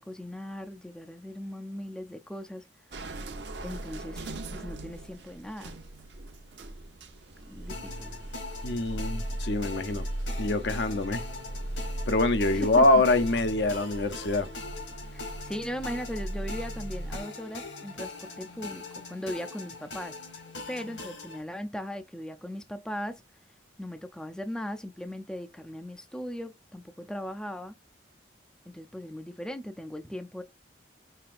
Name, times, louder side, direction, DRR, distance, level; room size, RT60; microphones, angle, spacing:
voice 1, 0.0-2.6 3.6-5.8 7.5-8.1 12.5-12.8 15.1-20.2 20.7-23.2 23.8-27.7 28.7-30.4, equal, 5° left, 0.4 m, -38 dB
sound 1, 2.9-17.2, right 1 dB, 65° right, 0.9 m, -38 dB
sound 2, 7.7-21.4, left 3 dB, 80° left, 2.7 m, -42 dB
voice 2, 8.6-10.1 10.4-11.2 12.1-14.5, left 2 dB, 65° left, 0.7 m, -25 dB
5.7 x 3.2 x 2.5 m
head